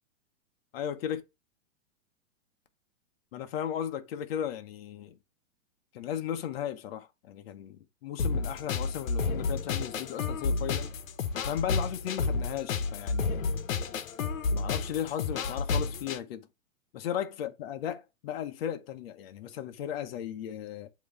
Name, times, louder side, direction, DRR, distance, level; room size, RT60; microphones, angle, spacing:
voice 1, 0.7-1.2 3.3-5.2 5.9-10.9 11.4-13.5 14.5-16.5 16.9-20.9, left 10 dB, 50° left, 1.0 m, -36 dB
sound 1, 8.2-16.2, left 4 dB, 80° left, 1.1 m, -31 dB
7.6 x 3.1 x 4.8 m
hypercardioid pair, 160°, 39 cm